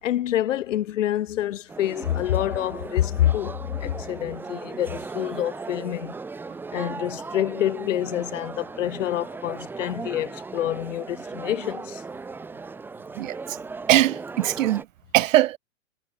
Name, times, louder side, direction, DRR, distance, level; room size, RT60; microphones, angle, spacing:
voice 1, 0.0-6.1 6.7-12.0, left 12 dB, 65° left, 2.3 m, -27 dB
sound 1, 1.7-14.8, right 4 dB, 5° right, 0.7 m, -37 dB
voice 2, 13.2-13.6 13.9-14.9 15.1-15.6, right 14 dB, 70° right, 0.6 m, -21 dB
hypercardioid pair, 140°, 40 cm